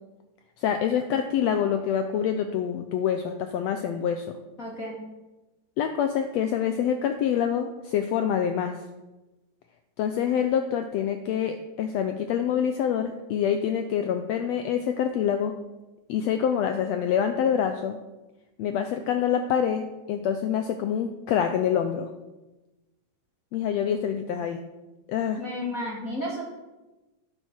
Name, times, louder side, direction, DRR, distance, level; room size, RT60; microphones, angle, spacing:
voice 1, 0.6-4.4 5.8-8.8 10.0-15.5 16.1-18.0 18.6-22.1 23.5-24.6 25.1-25.4, left 8 dB, 80° left, 7 dB, 1.5 m, -26 dB
voice 2, 4.6-4.9 25.4-26.4, left 1 dB, 30° left, -4 dB, 2.4 m, -32 dB
10.0 x 7.8 x 6.2 m, 1.1 s
omnidirectional pair, 3.6 m